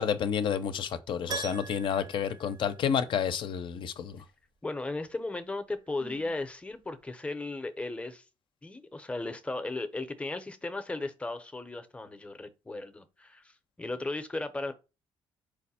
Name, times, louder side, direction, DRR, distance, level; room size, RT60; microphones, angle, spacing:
voice 1, 0.0-4.2, left 8 dB, 60° left, 0.5 m, -30 dB
Keyboard (musical), 1.3-3.3 3.6-3.7 6.4-6.5 6.7-6.8, right 4 dB, 45° right, 0.6 m, -41 dB
voice 2, 4.6-8.2 8.6-14.7, left 2 dB, 10° left, 0.6 m, -36 dB
Sigh, 5.8-6.5, right 4 dB, 85° right, 1.2 m, -51 dB
4.7 x 2.1 x 4.1 m
cardioid pair, 100°, 9 cm